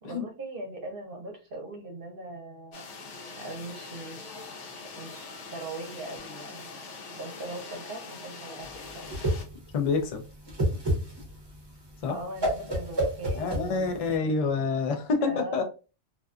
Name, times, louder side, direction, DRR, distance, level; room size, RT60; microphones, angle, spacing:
voice 1, 0.0-2.9 3.4-6.7 7.1-9.1 12.1-14.0 15.3-15.6, right 2 dB, 55° right, 0.8 m, -40 dB
sound 1, 2.7-9.4, left 4 dB, 85° left, 1.0 m, -43 dB
Whoosh swoosh swish, 8.7-14.2, right 1 dB, 25° right, 0.7 m, -30 dB
voice 2, 9.7-10.2 12.0-12.2 13.3-15.6, left 4 dB, 60° left, 0.4 m, -27 dB
2.5 x 2.3 x 2.3 m
omnidirectional pair, 1.2 m